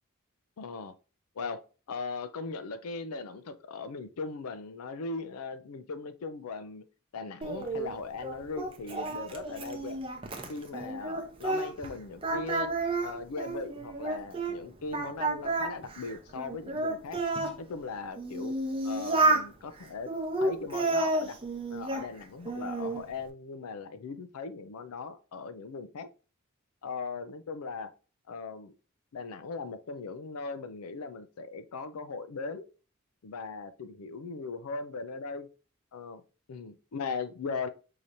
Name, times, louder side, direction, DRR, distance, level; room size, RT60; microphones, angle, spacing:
voice 1, 0.6-0.9 1.4-1.6 1.9-6.8 7.1-10.0 10.5-12.7 13.0-17.2 17.6-18.5 18.8-20.1 20.4-21.4 21.7-26.1 26.8-27.9 28.3-28.8 29.1-32.6 33.2-35.5 35.9-36.2 36.5-37.7, left 4 dB, 85° left, 11 dB, 0.5 m, -39 dB
Singing, 7.4-11.9 12.2-14.6 14.9-17.6 18.2-19.5 20.1-22.1 22.4-23.0, right 2 dB, 25° right, 0.6 m, -31 dB
4.8 x 2.8 x 2.6 m, 0.35 s
head